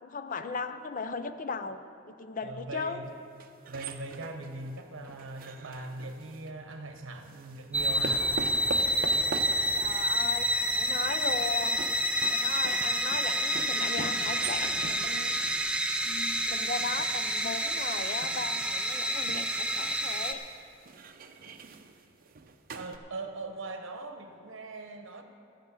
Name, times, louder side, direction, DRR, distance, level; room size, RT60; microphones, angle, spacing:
voice 1, 0.0-1.8 2.1-3.0 9.7-11.9 12.3-15.3 16.0-20.4, left 4 dB, 40° left, 10 dB, 0.5 m, -37 dB
voice 2, 2.4-3.0 3.7-8.3 22.7-25.2, right 2 dB, 70° right, 5 dB, 0.9 m, -40 dB
sound 1, 3.3-6.5 7.2-23.0, right 4 dB, 45° right, 0.6 m, -44 dB
sound 2, 7.7-20.3, equal, 5° right, 0.5 m, -29 dB
14.5 x 6.4 x 8.3 m, 2.6 s
head